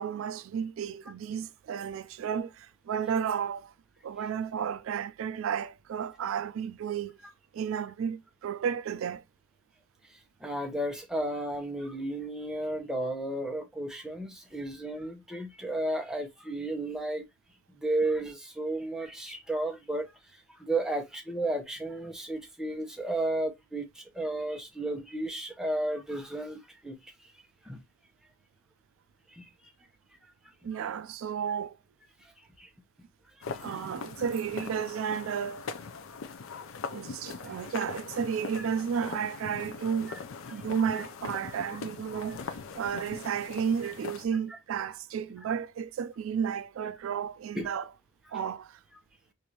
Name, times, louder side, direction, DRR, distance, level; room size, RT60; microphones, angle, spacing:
voice 1, 0.0-3.7 4.0-7.2 7.5-9.2 30.6-31.7 33.6-35.7 36.9-40.2 40.5-47.9 48.3-48.8, right 7 dB, 80° right, 0.3 m, -32 dB
voice 2, 10.4-17.3 17.8-20.1 20.6-27.0 27.6-27.8 29.3-29.5 32.6-32.7 33.5-33.8 37.4-37.6 38.6-38.7 40.1-40.2 40.9-41.0 43.8-43.9 44.5-44.6 47.5-47.7, right 1 dB, 5° right, 0.8 m, -33 dB
sound 1, 33.4-44.3, left 5 dB, 75° left, 0.5 m, -41 dB
4.7 x 2.6 x 2.8 m
head